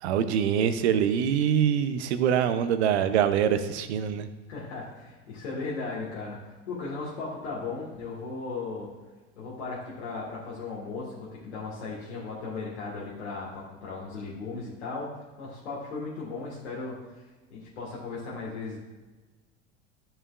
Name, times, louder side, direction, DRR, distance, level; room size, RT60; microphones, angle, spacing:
voice 1, 0.0-4.3, right 8 dB, 75° right, 11 dB, 0.7 m, -24 dB
voice 2, 4.5-8.9 9.4-15.1 15.4-17.2 17.5-18.8, left 3 dB, 85° left, -6 dB, 1.8 m, -36 dB
12.0 x 5.6 x 2.4 m, 1.2 s
hypercardioid pair, 85°, 33 cm